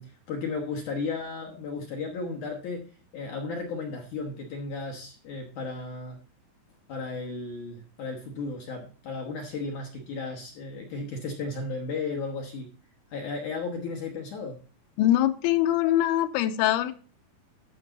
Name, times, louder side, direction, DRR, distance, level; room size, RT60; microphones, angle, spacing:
voice 1, 0.0-2.9 3.1-6.2 6.9-12.7 13.1-14.6, left 3 dB, 70° left, 1 dB, 1.8 m, -34 dB
voice 2, 15.0-16.9, left 13 dB, 90° left, 9 dB, 3.0 m, -23 dB
12.5 x 6.1 x 4.0 m, 0.40 s
omnidirectional pair, 5.4 m